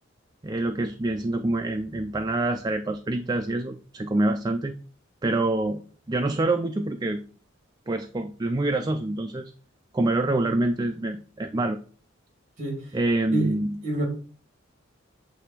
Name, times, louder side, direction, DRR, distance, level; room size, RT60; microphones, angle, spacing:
voice 1, 0.4-4.7 5.2-5.8 6.1-7.2 7.9-9.5 9.9-11.8 12.9-13.8, right 2 dB, 20° right, 0.4 m, -26 dB
voice 2, 12.6-12.9 13.3-13.5 13.8-14.1, right 2 dB, 35° right, 3.0 m, -27 dB
7.6 x 3.3 x 4.7 m
head